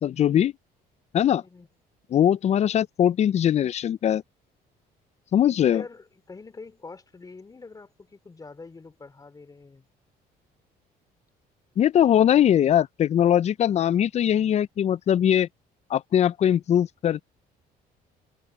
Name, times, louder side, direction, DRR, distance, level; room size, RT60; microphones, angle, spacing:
voice 1, 0.0-0.5 1.1-1.4 2.1-4.2 5.3-5.8 11.8-15.5 15.9-17.2, left 10 dB, 40° left, 0.4 m, -21 dB
voice 2, 1.4-1.7 5.6-9.9, left 3 dB, 20° left, 3.1 m, -44 dB
cardioid pair, 110°, 17 cm